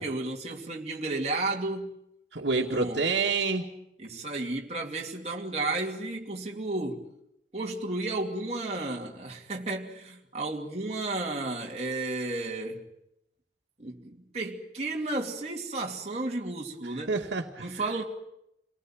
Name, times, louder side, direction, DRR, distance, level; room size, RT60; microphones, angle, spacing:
voice 1, 0.0-1.9 2.6-3.0 4.0-7.1 7.5-12.8 13.8-17.2 17.6-18.0, right 2 dB, 35° right, 2.7 m, -33 dB
voice 2, 2.3-3.7 17.1-17.8, right 4 dB, 80° right, 2.2 m, -28 dB
28.0 x 19.0 x 8.9 m
head